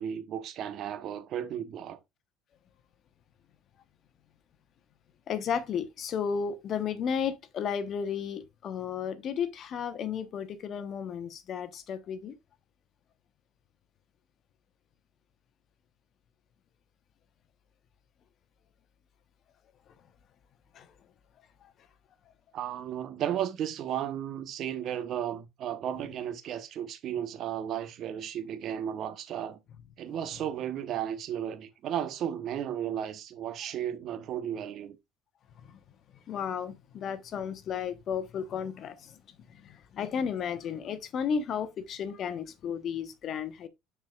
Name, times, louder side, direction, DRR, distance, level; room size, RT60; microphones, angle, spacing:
voice 1, 0.0-2.0 22.5-29.6 30.0-35.0, right 10 dB, 55° right, 1.0 m, -34 dB
voice 2, 5.3-12.3 20.7-20.9 21.6-21.7 35.7-35.8 36.1-39.2 39.5-43.7, left 7 dB, 50° left, 1.1 m, -33 dB
10.5 x 4.6 x 2.4 m
supercardioid pair, 85°, 0 cm